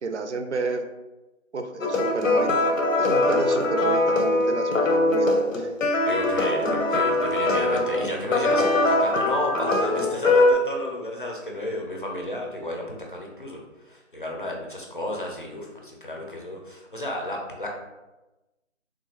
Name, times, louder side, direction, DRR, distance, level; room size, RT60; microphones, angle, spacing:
voice 1, 0.0-0.8 1.5-2.7 3.0-5.7, right 4 dB, 65° right, 6 dB, 0.5 m, -31 dB
sound 1, 1.8-10.5, left 2 dB, 90° left, 0.7 m, -22 dB
voice 2, 6.0-17.7, left 1 dB, 45° left, 0 dB, 0.5 m, -32 dB
3.5 x 2.4 x 3.1 m, 1.1 s
figure-of-eight pair, 175°, 38 cm